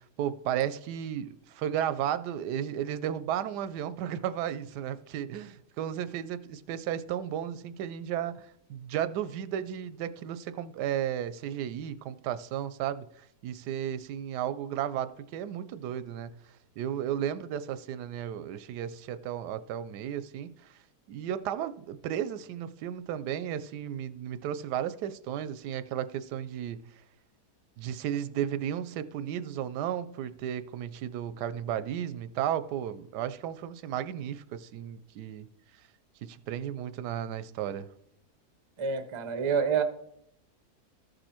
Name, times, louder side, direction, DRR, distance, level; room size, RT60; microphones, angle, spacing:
voice 1, 0.0-13.0 13.4-16.3 16.8-20.5 21.1-26.8 27.8-35.5 36.2-37.9, right 10 dB, 90° right, 1.2 m, -34 dB
voice 2, 38.8-39.8, right 6 dB, 40° right, 0.4 m, -27 dB
14.0 x 5.3 x 4.3 m
omnidirectional pair, 1.7 m